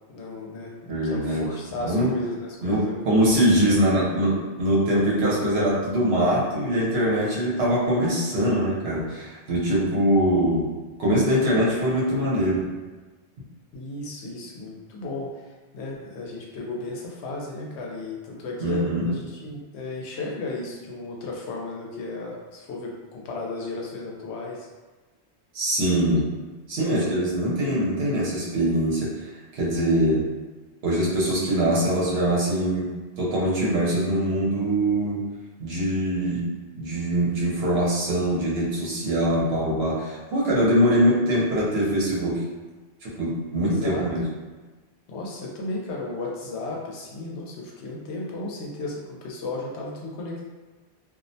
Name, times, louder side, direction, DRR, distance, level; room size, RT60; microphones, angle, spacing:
voice 1, 0.1-2.9 3.7-3.8 13.7-15.4 15.7-24.7 43.6-44.1 45.1-50.5, left 2 dB, 85° left, -2 dB, 0.9 m, -34 dB
voice 2, 0.9-1.5 1.8-2.2 2.6-10.7 11.0-12.7 18.6-19.1 25.5-26.3 26.7-30.3 30.8-35.3 35.6-36.5 36.8-42.4 43.0-44.3, right 1 dB, 70° right, -6 dB, 1.0 m, -23 dB
2.4 x 2.1 x 2.6 m, 1.3 s
omnidirectional pair, 1.1 m